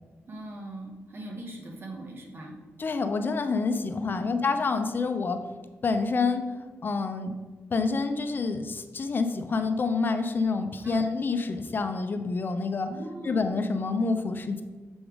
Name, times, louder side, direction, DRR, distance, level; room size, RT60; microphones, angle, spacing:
voice 1, 0.3-2.6 4.1-4.3 10.8-11.1 12.9-13.4, right 1 dB, 50° right, 0 dB, 1.5 m, -40 dB
voice 2, 2.8-5.4 5.8-6.4 6.8-7.3 7.7-12.9 13.2-14.6, left 4 dB, 45° left, 7 dB, 0.5 m, -27 dB
7.0 x 3.5 x 4.8 m, 1.3 s
cardioid pair, 85°, 5 cm